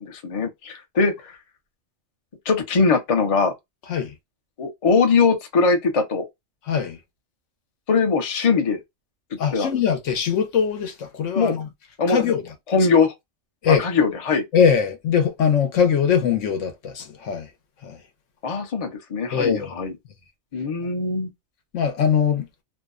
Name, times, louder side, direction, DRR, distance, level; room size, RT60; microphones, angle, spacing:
voice 1, 0.0-1.3 2.5-3.5 4.6-6.2 7.9-8.8 9.5-9.7 11.4-11.6 12.0-12.2 12.7-13.1 13.7-14.4 18.4-19.9 20.5-21.3, left 4 dB, 40° left, 0.5 m, -21 dB
voice 2, 6.7-7.0 9.4-11.7 12.1-12.4 13.6-13.8 14.5-17.5 17.8-18.0 19.3-19.7 21.7-22.5, left 7 dB, 75° left, 1.0 m, -21 dB
2.7 x 2.1 x 2.3 m
omnidirectional pair, 1.3 m